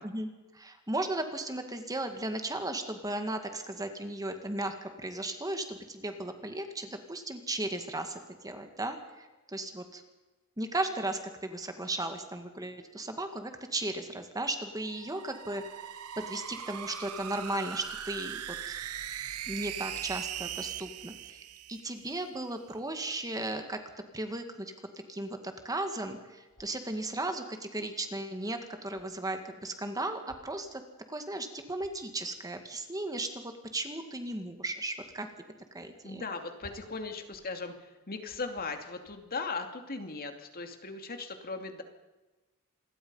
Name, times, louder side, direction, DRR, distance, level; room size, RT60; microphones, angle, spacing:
voice 1, 0.0-10.0 10.6-18.8 19.5-21.4 21.7-23.8 24.1-24.7 25.1-30.8 31.1-35.3 35.7-36.3, right 2 dB, 15° right, 6 dB, 1.9 m, -36 dB
sound 1, 14.8-22.3, right 10 dB, 85° right, 0.8 m, -40 dB
sound 2, 26.5-26.9 28.1-28.2 28.4-28.5 28.7-29.1 30.2-30.6 31.1-31.2 31.5-32.1 33.4-33.6 34.3-34.6 34.9-35.2 35.6-35.7 35.9-36.0 36.6-37.5 37.9-38.0 38.2-38.7 39.0-39.2, equal, 70° left, 6.5 m, -57 dB
voice 2, 36.0-41.8, left 4 dB, 45° left, 6 dB, 2.6 m, -38 dB
27.0 x 21.5 x 5.5 m, 1.1 s
head